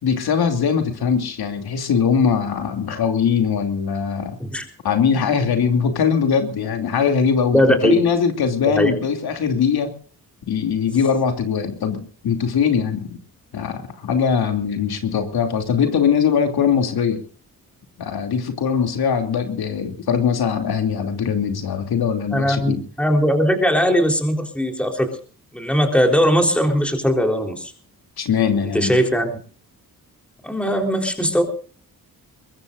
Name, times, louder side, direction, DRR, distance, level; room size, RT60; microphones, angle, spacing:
voice 1, 0.0-4.4 4.8-9.9 10.5-13.2 13.5-17.2 18.0-22.8 28.2-29.0, left 6 dB, 85° left, 5 dB, 2.9 m, -21 dB
voice 2, 7.5-8.0 8.6-8.9 22.3-25.1 25.5-27.7 28.7-29.4 30.4-31.4, equal, 5° left, 3 dB, 3.9 m, -19 dB
22.5 x 22.0 x 2.6 m, 0.41 s
wide cardioid pair, 130°, 37 cm